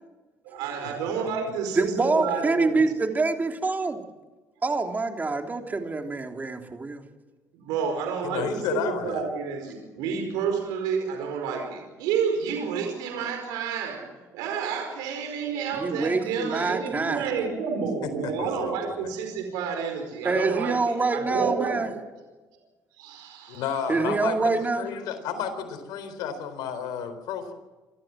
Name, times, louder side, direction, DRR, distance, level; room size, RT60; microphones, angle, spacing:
voice 1, 0.4-3.0 7.5-22.1 22.9-23.6, right 6 dB, 85° right, 3 dB, 4.9 m, -30 dB
voice 2, 1.7-4.0 4.6-7.0 15.7-17.3 20.2-21.9 23.9-24.9, right 3 dB, 25° right, 4 dB, 3.3 m, -26 dB
voice 3, 8.2-9.2 18.4-19.1 23.5-24.4 24.8-27.5, left 7 dB, 80° left, 8 dB, 4.0 m, -32 dB
27.0 x 14.0 x 7.6 m, 1.2 s
supercardioid pair, 85°, 7 cm